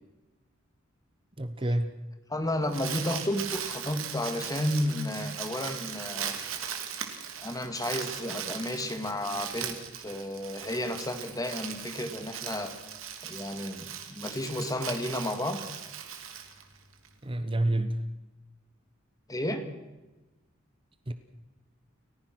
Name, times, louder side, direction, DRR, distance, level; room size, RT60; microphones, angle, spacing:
voice 1, 1.4-1.9 17.2-18.0 21.1-21.2, right 1 dB, 25° right, 10 dB, 1.0 m, -28 dB
voice 2, 2.3-6.4 7.4-12.7 13.2-15.6 19.3-19.7, left 1 dB, 15° left, 7 dB, 2.1 m, -32 dB
Crumpling crinkling, 2.4-17.1, right 8 dB, 75° right, 2.7 m, -39 dB
30.0 x 15.0 x 6.1 m, 1.1 s
head